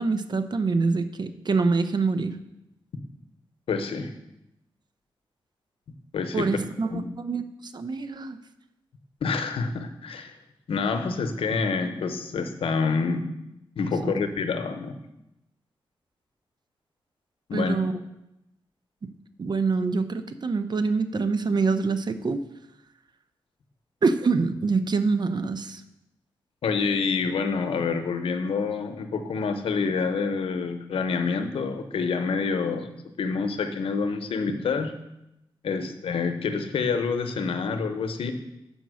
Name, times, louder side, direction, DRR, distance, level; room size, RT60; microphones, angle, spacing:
voice 1, 0.0-2.3 6.3-8.4 14.0-14.1 17.5-17.9 19.4-22.4 24.0-25.8 35.8-35.9, right 4 dB, 50° right, 10 dB, 0.7 m, -25 dB
voice 2, 3.7-4.1 6.1-6.5 6.9-7.1 9.2-10.3 10.7-13.3 13.8-15.0 17.5-17.8 26.6-32.9 33.2-34.9 35.6-38.3, left 5 dB, 85° left, 8 dB, 0.8 m, -27 dB
7.1 x 5.2 x 6.2 m, 0.88 s
cardioid pair, 70°, 9 cm